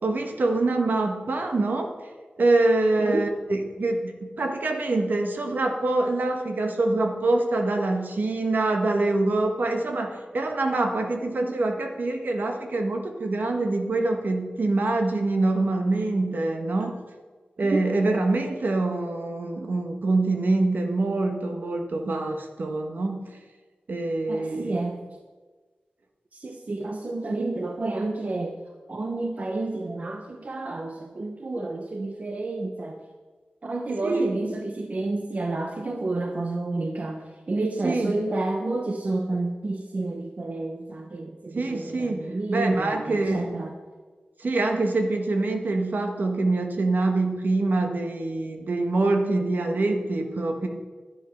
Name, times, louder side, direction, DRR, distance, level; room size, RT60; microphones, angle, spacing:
voice 1, 0.0-1.9 2.4-16.9 17.6-23.2 23.9-24.7 34.0-34.4 37.8-38.1 41.5-42.2 42.5-43.4 44.4-50.7, right 2 dB, 70° right, 4 dB, 1.5 m, -25 dB
voice 2, 24.3-25.0 26.3-28.6 28.9-33.0 33.6-43.8, right 2 dB, 50° right, 4 dB, 0.9 m, -30 dB
11.0 x 9.7 x 5.9 m, 1.4 s
wide cardioid pair, 85°, 3 cm